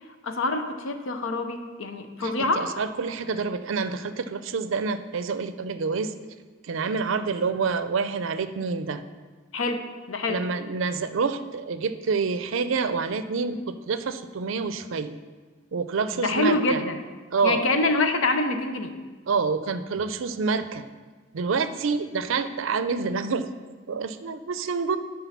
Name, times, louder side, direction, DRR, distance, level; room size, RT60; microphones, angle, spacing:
voice 1, 0.2-2.6 9.5-10.4 16.2-17.0 17.4-18.9, left 2 dB, 80° left, 7 dB, 0.7 m, -26 dB
voice 2, 2.2-6.1 6.6-9.0 10.3-15.2 15.7-16.8 17.3-17.8 19.3-20.8 21.3-23.5 23.9-25.0, right 4 dB, 70° right, 11 dB, 0.5 m, -27 dB
10.0 x 3.8 x 5.8 m, 1.4 s
head